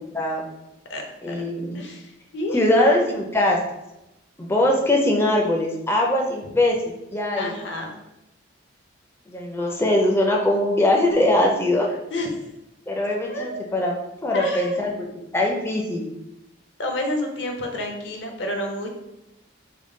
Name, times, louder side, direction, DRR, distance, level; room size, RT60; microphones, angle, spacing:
voice 1, 0.1-0.5 1.2-1.8 2.5-3.6 4.4-6.8 7.1-7.6 9.3-11.9 12.9-14.0 14.2-14.9 15.3-16.0, left 1 dB, 15° left, -1 dB, 0.4 m, -21 dB
voice 2, 0.9-1.3 1.7-2.6 7.4-7.9 12.1-12.3 13.3-13.8 14.3-14.8 16.8-18.9, left 1 dB, 65° left, 3 dB, 0.6 m, -29 dB
3.5 x 2.2 x 3.7 m, 0.90 s
head